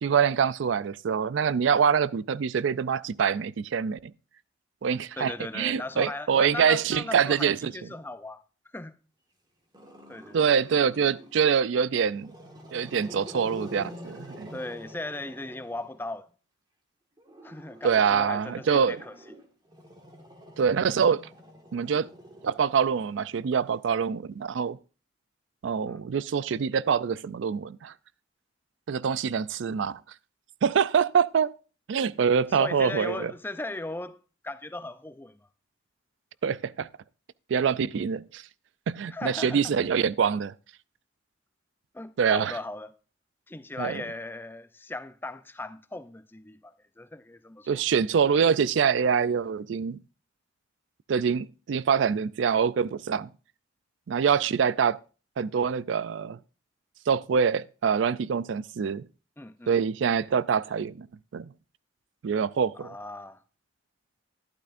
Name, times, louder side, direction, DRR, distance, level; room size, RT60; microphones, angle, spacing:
voice 1, 0.0-4.1 4.8-7.7 10.3-12.3 12.7-14.5 17.8-19.0 20.6-21.3 21.7-22.1 22.4-24.8 25.6-27.9 28.9-30.0 30.6-31.5 31.9-33.3 36.4-36.9 37.5-38.4 38.9-40.5 42.2-42.6 43.8-44.0 47.7-50.0 51.1-53.3 54.1-55.0 55.4-56.4 57.1-59.0 59.7-61.1 61.3-61.5 62.2-62.9, right 6 dB, 75° right, 0.4 m, -25 dB
voice 2, 5.2-8.4 8.7-9.0 10.1-10.4 14.5-16.3 17.4-19.1 25.9-26.0 32.5-34.2 34.4-35.4 39.1-39.8 41.9-42.9 43.5-47.8 59.4-59.8 62.8-63.4, left 2 dB, 10° left, 0.4 m, -38 dB
Growling, 9.7-11.5 12.0-16.2 17.2-23.7, equal, 20° right, 1.7 m, -47 dB
12.0 x 12.0 x 2.5 m
head